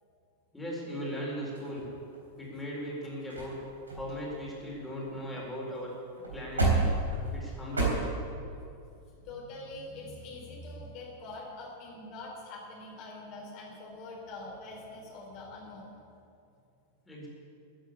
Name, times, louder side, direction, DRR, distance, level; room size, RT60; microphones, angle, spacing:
voice 1, 0.5-1.9 2.4-3.6 3.9-5.9 6.3-6.7 7.3-8.1 17.1-17.3, equal, 10° left, -4 dB, 4.5 m, -38 dB
sound 1, 1.5-2.4 3.0-3.1 3.3-3.6 3.9-5.4 5.7-5.8 6.2-7.8, right 3 dB, 75° right, 3.5 m, -31 dB
voice 2, 9.1-15.9, left 2 dB, 45° left, -3 dB, 3.9 m, -44 dB
14.0 x 9.0 x 8.6 m, 2.5 s
figure-of-eight pair, 90°, 0 cm